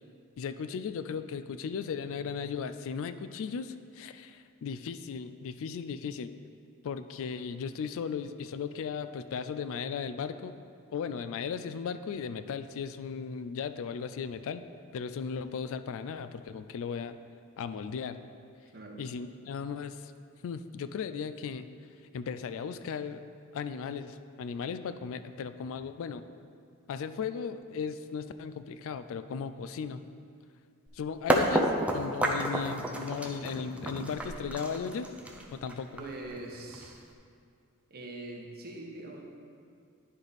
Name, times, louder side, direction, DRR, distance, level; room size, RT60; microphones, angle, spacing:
voice 1, 0.4-6.3 6.8-10.6 10.9-14.6 14.9-17.2 17.6-18.2 19.0-20.1 20.4-21.7 22.1-23.2 23.5-26.3 26.9-30.0 30.9-35.1 35.5-36.0, left 6 dB, 65° left, 12 dB, 0.3 m, -36 dB
sound 1, 30.9-31.0 31.3-37.1, right 1 dB, 5° right, 0.5 m, -30 dB
voice 2, 35.9-37.0 37.9-39.2, right 2 dB, 45° right, 0 dB, 1.1 m, -43 dB
10.5 x 4.9 x 4.0 m, 2.4 s
head